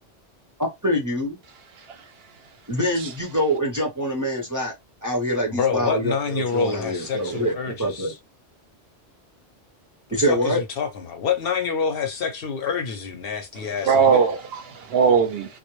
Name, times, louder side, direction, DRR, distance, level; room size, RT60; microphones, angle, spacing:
voice 1, 0.8-1.4 2.7-4.7 5.0-8.1 10.1-10.6, equal, 25° right, 0.5 m, -25 dB
voice 2, 5.5-8.2 10.2-14.2, left 6 dB, 65° left, 0.7 m, -27 dB
voice 3, 13.8-15.6, right 6 dB, 65° right, 0.7 m, -20 dB
2.2 x 2.0 x 2.9 m
omnidirectional pair, 1.2 m